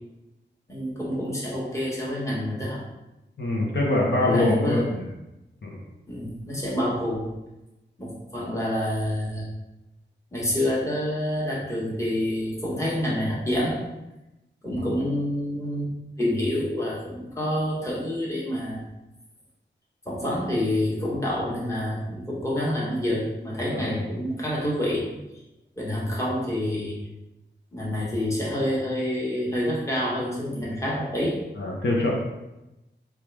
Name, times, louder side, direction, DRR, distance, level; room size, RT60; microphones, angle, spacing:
voice 1, 0.7-2.8 4.2-4.8 6.1-7.3 8.0-9.4 10.3-13.8 14.6-15.9 16.2-18.8 20.0-25.1 25.8-27.0 27.7-31.4, left 1 dB, 15° left, -6 dB, 1.2 m, -27 dB
voice 2, 3.4-5.0 5.6-5.8 14.7-14.9 23.7-24.0 31.6-32.1, left 2 dB, 65° left, -3 dB, 0.8 m, -24 dB
4.6 x 2.4 x 3.4 m, 0.98 s
wide cardioid pair, 100°, 19 cm